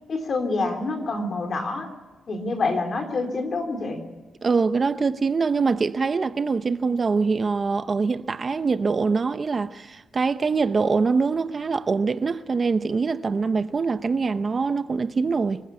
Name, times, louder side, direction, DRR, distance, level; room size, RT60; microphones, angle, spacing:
voice 1, 0.1-1.9 2.3-4.1, left 3 dB, 50° left, 3.6 m, -27 dB
voice 2, 4.4-15.6, right 4 dB, 40° right, 0.7 m, -24 dB
25.5 x 15.0 x 8.4 m
cardioid pair, 100°, 0 cm